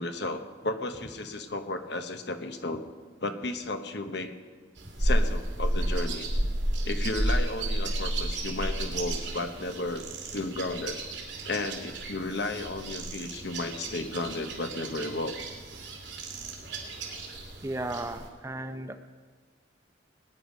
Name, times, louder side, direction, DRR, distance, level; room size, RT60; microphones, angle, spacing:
voice 1, 0.0-2.8 3.2-4.3 5.0-6.3 6.8-10.0 10.3-11.0 11.4-15.3, left 2 dB, 65° left, 7 dB, 1.0 m, -33 dB
sound 1, 4.8-18.3, right 1 dB, 85° right, 2.8 m, -32 dB
voice 2, 17.6-19.0, right 1 dB, 15° right, 8 dB, 0.6 m, -35 dB
19.5 x 9.8 x 5.2 m, 1.4 s
head